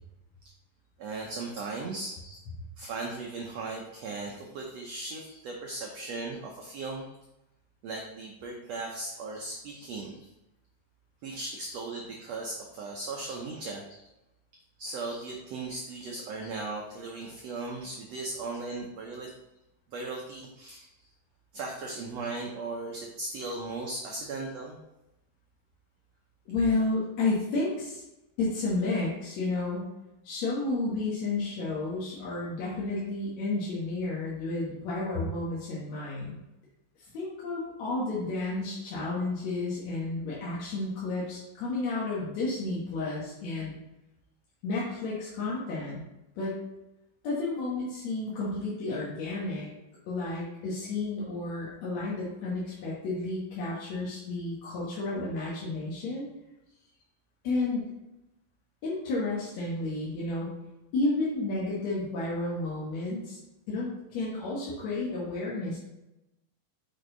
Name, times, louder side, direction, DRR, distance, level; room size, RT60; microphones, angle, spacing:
voice 1, 1.0-2.1 2.8-7.1 7.8-10.2 11.2-13.8 14.8-19.3 19.9-20.9 21.5-24.8, right 3 dB, 85° right, 0 dB, 1.4 m, -37 dB
voice 2, 26.5-28.0 28.4-29.9 30.2-36.4 37.0-43.8 44.6-46.0 46.4-46.5 47.2-49.7 50.1-56.3 57.4-57.9 58.8-60.5 60.9-63.4 63.7-65.8, left 2 dB, 60° left, -6 dB, 2.3 m, -31 dB
6.5 x 5.4 x 3.9 m, 0.94 s
omnidirectional pair, 4.0 m